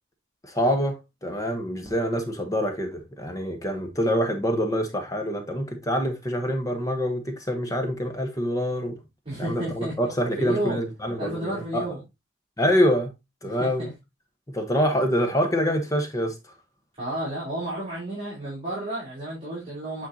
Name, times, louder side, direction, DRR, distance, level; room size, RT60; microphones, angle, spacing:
voice 1, 0.4-9.0 9.4-11.8 12.6-13.1 13.4-13.9 14.5-16.3, equal, 15° left, 1.0 m, -26 dB
voice 2, 9.3-9.9 10.4-10.8 11.2-12.0 13.4-13.9 17.0-20.1, right 1 dB, 25° right, 3.7 m, -31 dB
8.8 x 4.5 x 2.7 m
head